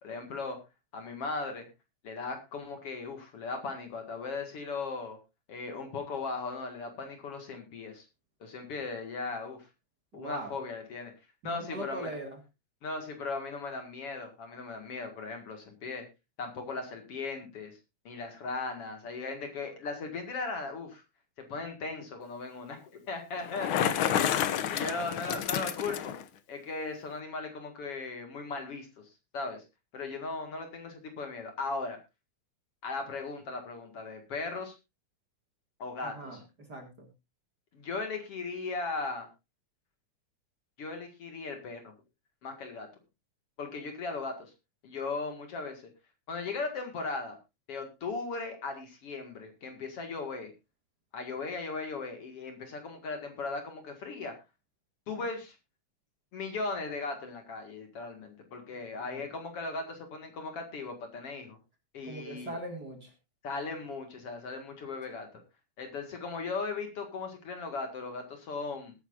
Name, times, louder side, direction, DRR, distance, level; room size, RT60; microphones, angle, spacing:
voice 1, 0.0-0.6 0.9-1.7 2.0-5.2 5.5-8.0 8.4-9.6 10.1-11.1 11.4-12.1 12.8-16.0 16.4-17.8 18.0-21.0 21.5-26.1 26.5-28.9 29.3-29.6 29.9-32.0 32.8-34.7 35.8-36.1 37.7-39.3 40.8-41.9 42.4-42.9 43.6-44.5 44.8-45.8 46.3-47.4 47.7-50.5 51.1-54.3 55.1-55.6 56.3-61.6 61.9-62.6 63.4-65.3 65.8-68.9, left 3 dB, 55° left, 5 dB, 2.8 m, -37 dB
voice 2, 10.1-10.5 11.4-12.4 25.0-25.1 36.0-37.1 59.0-59.2 62.0-63.1, right 2 dB, 35° right, 3 dB, 2.5 m, -41 dB
Bicycle, 23.4-26.2, left 10 dB, 85° left, 1.1 m, -30 dB
20.5 x 9.2 x 2.6 m, 0.25 s
omnidirectional pair, 3.4 m